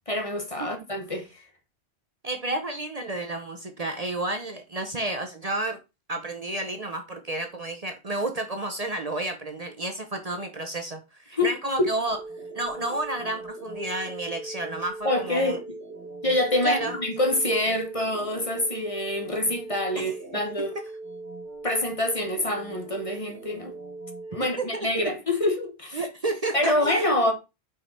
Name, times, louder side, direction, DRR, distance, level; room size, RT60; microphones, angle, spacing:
voice 1, 0.1-1.5 11.3-11.5 11.8-11.9 15.0-15.6 16.2-20.7 21.6-23.7 24.3-26.1 26.5-27.3, left 1 dB, 30° left, 1.2 m, -26 dB
voice 2, 2.2-5.8 6.1-12.2 12.5-15.6 16.6-17.0 20.0-20.1 24.6-24.9 25.9-27.2, right 2 dB, 40° right, 0.8 m, -31 dB
sound 1, 12.1-24.5, right 3 dB, 65° right, 1.9 m, -40 dB
5.7 x 5.1 x 4.2 m
omnidirectional pair, 1.1 m